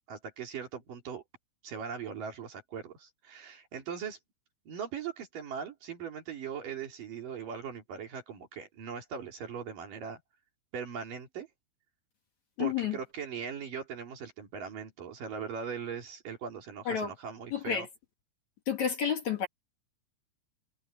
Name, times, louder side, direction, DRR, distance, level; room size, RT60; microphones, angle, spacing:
voice 1, 0.1-1.2 1.6-4.2 4.7-10.2 10.7-11.5 12.6-17.9, right 7 dB, 55° right, 4.5 m, -40 dB
voice 2, 12.6-13.0 16.9-17.1 17.5-17.9 18.7-19.5, left 8 dB, 50° left, 3.1 m, -30 dB
omnidirectional pair, 4.7 m